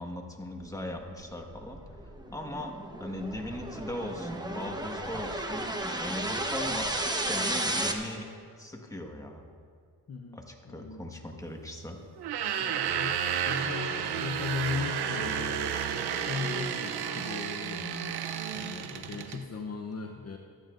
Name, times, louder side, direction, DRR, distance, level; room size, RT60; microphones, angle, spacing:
voice 1, 0.0-1.8 2.3-5.7 6.0-8.3 8.6-9.4 10.3-12.0, left 1 dB, 10° left, 2 dB, 1.5 m, -39 dB
sound 1, 1.0-7.9, right 1 dB, 10° right, 1.1 m, -33 dB
voice 2, 10.1-11.1 12.6-18.1 18.5-20.4, left 5 dB, 40° left, 2 dB, 0.8 m, -38 dB
sound 2, 12.2-19.4, right 8 dB, 85° right, 0.8 m, -32 dB
25.0 x 9.2 x 2.6 m, 2.2 s
cardioid pair, 80°, 38 cm